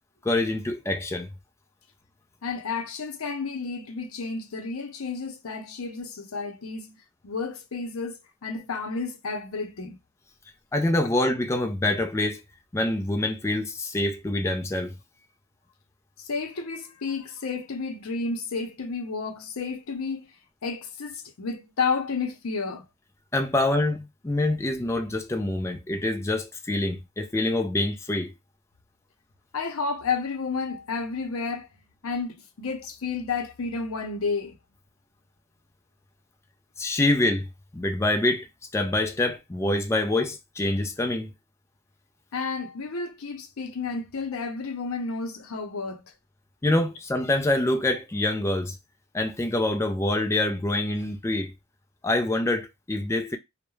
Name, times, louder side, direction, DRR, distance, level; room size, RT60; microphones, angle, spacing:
voice 1, 0.2-1.3 10.7-12.4 12.7-14.9 23.3-28.3 36.8-37.5 37.7-38.5 38.7-41.3 46.6-48.7 49.1-51.5 52.0-53.4, left 2 dB, 15° left, 0.3 m, -25 dB
voice 2, 2.4-7.0 7.2-10.0 16.2-20.3 20.6-22.9 29.5-31.7 32.0-34.6 42.3-46.0, left 4 dB, 75° left, 0.6 m, -31 dB
2.3 x 2.1 x 3.0 m
head